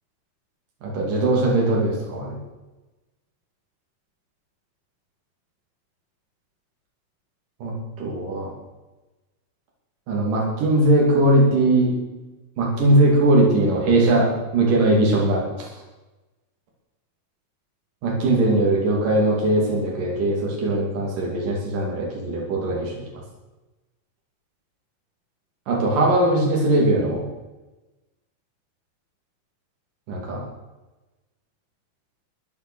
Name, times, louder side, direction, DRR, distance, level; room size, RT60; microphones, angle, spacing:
voice 1, 0.8-2.4 7.6-8.5 10.1-11.9 12.6-15.7 18.0-23.0 25.7-27.2 30.1-30.4, right 1 dB, 75° right, -2 dB, 4.5 m, -20 dB
15.5 x 9.8 x 6.3 m, 1.1 s
omnidirectional pair, 3.8 m